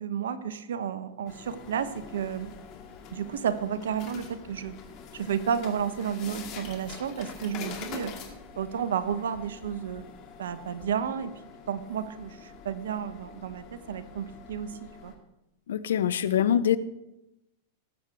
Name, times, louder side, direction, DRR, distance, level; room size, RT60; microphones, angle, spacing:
voice 1, 0.0-2.5 3.1-4.7 5.1-8.1 8.6-10.1 10.4-11.3 11.7-15.1, right 8 dB, 75° right, 13 dB, 0.9 m, -32 dB
sound 1, 1.3-15.1, left 6 dB, 45° left, 2.4 m, -45 dB
voice 2, 15.7-16.8, left 9 dB, 75° left, 16 dB, 0.7 m, -24 dB
18.5 x 8.3 x 3.5 m, 0.94 s
hypercardioid pair, 105°, 0 cm